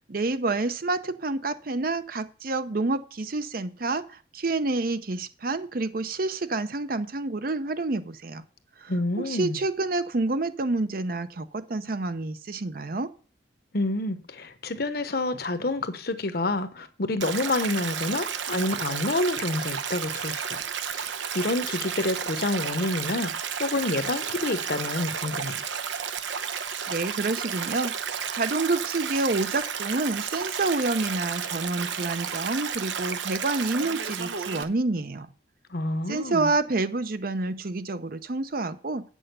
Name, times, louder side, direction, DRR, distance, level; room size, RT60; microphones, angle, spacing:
voice 1, 0.1-8.4 8.8-8.9 9.2-13.1 26.9-27.9 28.3-35.3 36.1-39.0, right 3 dB, 50° right, 0.7 m, -28 dB
voice 2, 8.9-9.6 13.7-20.6 20.9-23.3 23.6-25.6 35.7-36.5, left 2 dB, 55° left, 0.9 m, -28 dB
Stream, 17.2-34.6, right 7 dB, 80° right, 0.8 m, -32 dB
8.8 x 6.4 x 6.7 m
head